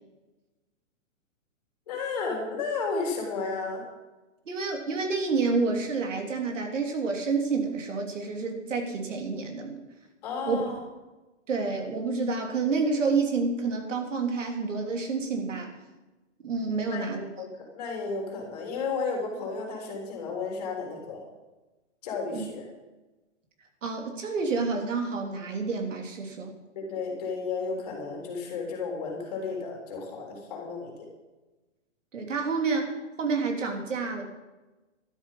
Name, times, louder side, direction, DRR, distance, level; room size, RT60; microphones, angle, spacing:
voice 1, 1.9-3.8 10.2-10.8 16.9-21.2 22.0-22.7 26.8-31.1, left 4 dB, 30° left, 1 dB, 3.5 m, -33 dB
voice 2, 4.5-9.8 10.5-10.6 11.5-15.7 16.4-17.2 22.3-22.4 23.8-26.5 32.1-34.2, right 4 dB, 80° right, 3 dB, 3.4 m, -29 dB
12.5 x 12.5 x 5.5 m, 1.1 s
hypercardioid pair, 175°, 37 cm